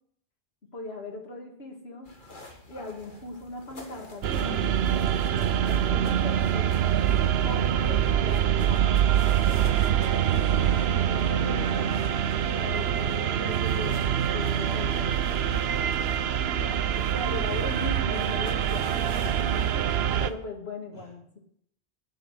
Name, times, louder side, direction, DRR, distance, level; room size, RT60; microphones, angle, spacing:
voice 1, 0.7-2.1 2.7-6.9 7.4-8.9 9.7-11.6 12.4-15.2 16.4-19.9 20.2-21.4, left 2 dB, 85° left, 1 dB, 2.3 m, -39 dB
sound 1, 2.0-20.3, left 2 dB, 50° left, 1.9 m, -48 dB
sound 2, 4.2-20.3, right 10 dB, 85° right, 0.9 m, -25 dB
voice 2, 11.2-11.9 15.4-16.2 16.5-16.9 20.9-21.1, equal, 20° left, -2 dB, 2.5 m, -41 dB
9.9 x 7.9 x 6.5 m, 0.66 s
omnidirectional pair, 1.0 m